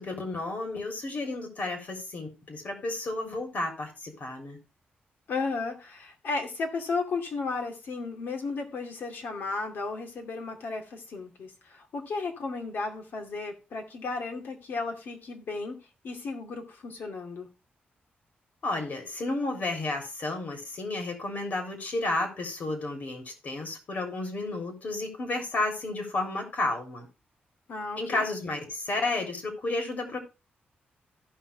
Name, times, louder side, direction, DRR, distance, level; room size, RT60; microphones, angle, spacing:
voice 1, 0.0-4.6 18.6-27.1 28.0-30.2, left 2 dB, 50° left, 3.4 m, -32 dB
voice 2, 5.3-15.8 16.0-17.5 27.7-28.3, left 4 dB, 65° left, 2.4 m, -34 dB
15.5 x 6.0 x 3.4 m
wide cardioid pair, 140°, 4 cm